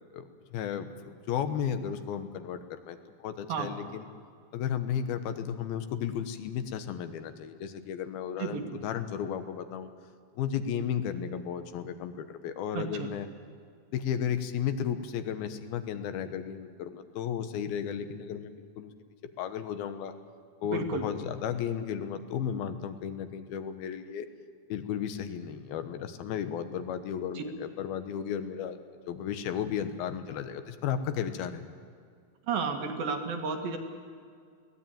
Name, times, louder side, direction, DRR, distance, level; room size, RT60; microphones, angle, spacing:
voice 1, 0.5-4.1 4.5-9.9 10.3-13.3 13.9-18.9 19.4-20.1 20.6-24.3 24.7-28.8 29.1-31.6, left 8 dB, 90° left, 9 dB, 3.0 m, -34 dB
voice 2, 8.4-8.8 12.7-13.1 20.7-21.1 27.3-27.4 32.5-33.8, right 5 dB, 75° right, 4 dB, 3.5 m, -32 dB
22.0 x 17.0 x 9.1 m, 2.1 s
omnidirectional pair, 4.2 m